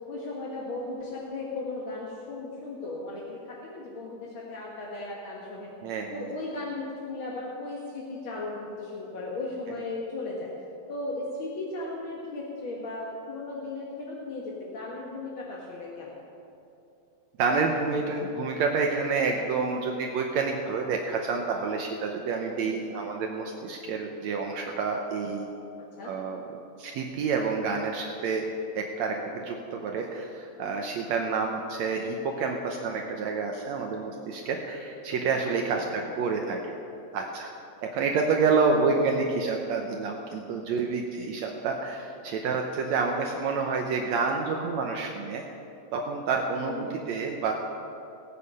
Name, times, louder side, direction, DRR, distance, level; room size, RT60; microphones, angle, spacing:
voice 1, 0.1-5.7 6.1-10.5 10.9-16.1 22.6-22.8 26.0-26.2 35.4-36.0 46.7-47.0, left 2 dB, 55° left, -3 dB, 1.5 m, -36 dB
voice 2, 5.8-6.3 17.4-25.5 26.0-26.4 26.8-28.4 28.7-36.6 37.1-37.5 37.9-45.4 45.9-47.5, right 4 dB, 85° right, 2 dB, 1.5 m, -28 dB
18.5 x 8.5 x 5.5 m, 2.7 s
omnidirectional pair, 4.3 m